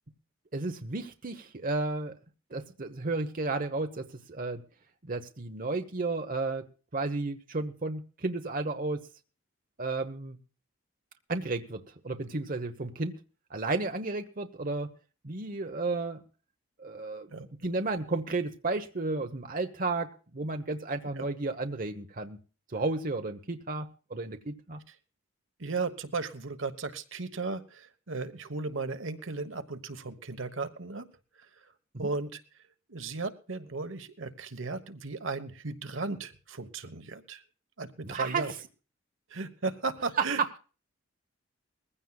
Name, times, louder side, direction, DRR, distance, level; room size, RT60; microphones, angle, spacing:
voice 1, 0.5-2.2 2.5-4.6 5.0-9.1 9.8-10.4 11.3-13.2 13.5-14.9 15.2-16.2 16.8-17.3 17.6-22.4 22.7-24.8 31.9-32.1 38.0-38.6 40.4-40.6, right 3 dB, 40° right, 6 dB, 1.0 m, -33 dB
voice 2, 25.6-31.1 32.0-32.4 32.9-37.4 37.8-38.5 39.3-40.4, right 3 dB, 65° right, 10 dB, 1.2 m, -35 dB
21.0 x 15.5 x 2.3 m, 0.36 s
head